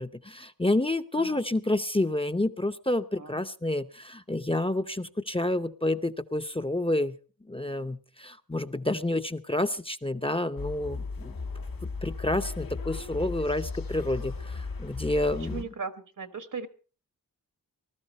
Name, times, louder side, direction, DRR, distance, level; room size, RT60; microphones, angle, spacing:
voice 1, 0.0-7.2 7.5-11.4 12.0-15.6, left 1 dB, 15° left, 8 dB, 0.7 m, -29 dB
sound 1, 10.6-15.6, left 4 dB, 85° left, 1.8 m, -36 dB
voice 2, 15.4-16.7, right 5 dB, 65° right, 12 dB, 1.5 m, -38 dB
19.5 x 13.0 x 4.2 m, 0.37 s
wide cardioid pair, 75°, 34 cm